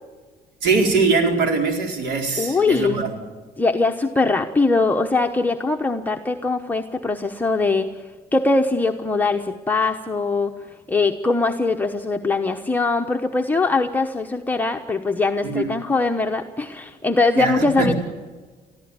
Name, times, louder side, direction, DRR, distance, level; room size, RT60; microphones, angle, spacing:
voice 1, 0.6-3.1 15.4-15.7 17.3-17.9, right 4 dB, 80° right, 3 dB, 4.5 m, -21 dB
voice 2, 2.4-3.0 3.6-10.5 10.9-17.9, left 3 dB, 10° left, 2 dB, 1.0 m, -21 dB
20.0 x 14.5 x 9.7 m, 1.4 s
cardioid pair, 110°, 17 cm